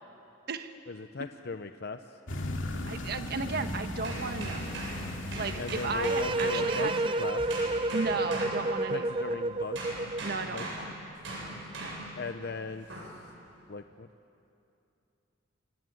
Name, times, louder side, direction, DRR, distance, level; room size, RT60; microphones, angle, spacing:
voice 1, 0.9-2.0 5.6-6.9 7.2-7.4 8.9-9.8 10.5-10.7 12.2-13.1 13.7-14.1, left 3 dB, 55° left, 8 dB, 0.7 m, -38 dB
sound 1, 2.3-6.8, left 1 dB, 90° left, 2.4 m, -37 dB
voice 2, 2.9-4.8 5.3-7.2 7.9-9.1 10.2-10.9 11.8-11.9, right 4 dB, 55° right, 8 dB, 1.2 m, -34 dB
sound 2, 4.0-9.3 9.8-12.3 12.9-13.2, right 1 dB, 85° right, 8.0 m, -39 dB
sound 3, 6.0-10.3, right 2 dB, 25° right, 0.5 m, -30 dB
26.5 x 21.5 x 9.3 m, 2.7 s
head